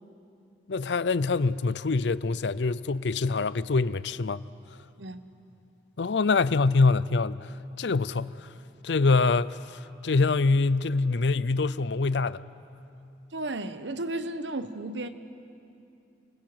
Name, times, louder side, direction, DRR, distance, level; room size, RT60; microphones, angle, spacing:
voice 1, 0.7-4.4 6.0-7.5 7.8-8.3 8.8-9.6 10.0-12.4, left 3 dB, 75° left, 0.6 m, -24 dB
voice 2, 13.3-15.1, right 2 dB, 85° right, 1.1 m, -33 dB
29.0 x 20.5 x 7.9 m
head